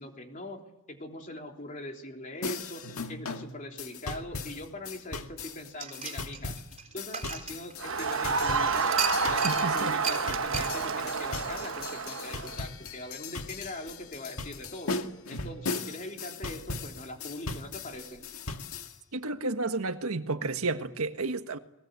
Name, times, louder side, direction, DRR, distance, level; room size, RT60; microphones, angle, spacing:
voice 1, 0.0-6.6 6.9-9.0 9.2-15.0 15.3-18.3, left 1 dB, 35° left, 3.4 m, -42 dB
sound 1, 2.4-18.9, left 3 dB, 80° left, 1.8 m, -38 dB
sound 2, 5.8-8.2 8.9-9.7 10.0-10.2 10.5-10.7, right 7 dB, 30° right, 3.8 m, -35 dB
Crowd, 7.8-12.6, right 4 dB, 65° right, 1.1 m, -29 dB
voice 2, 9.4-9.9 19.1-21.6, right 3 dB, 90° right, 1.6 m, -31 dB
29.5 x 21.5 x 8.2 m
head